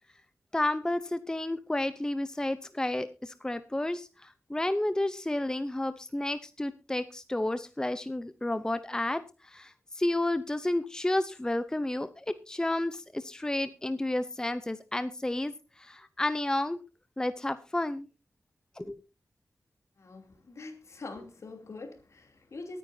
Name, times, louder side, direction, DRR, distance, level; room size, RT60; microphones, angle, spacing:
voice 1, 0.5-15.5 15.8-16.8 17.2-18.1 18.8-19.0, left 1 dB, 15° left, 0.6 m, -31 dB
voice 2, 20.0-22.8, left 3 dB, 60° left, 2.8 m, -44 dB
23.5 x 9.2 x 2.7 m
wide cardioid pair, 105°, 5 cm